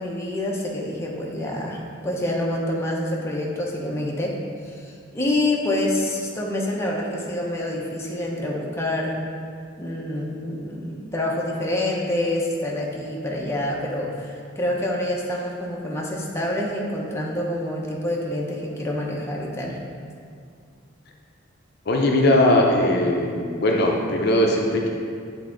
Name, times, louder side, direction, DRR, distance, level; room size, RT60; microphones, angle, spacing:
voice 1, 0.0-4.4 4.7-9.1 9.8-19.8, left 1 dB, 15° left, -3 dB, 0.7 m, -27 dB
voice 2, 21.9-24.9, left 1 dB, 55° left, 0 dB, 0.6 m, -19 dB
8.0 x 3.6 x 3.8 m, 2.2 s
head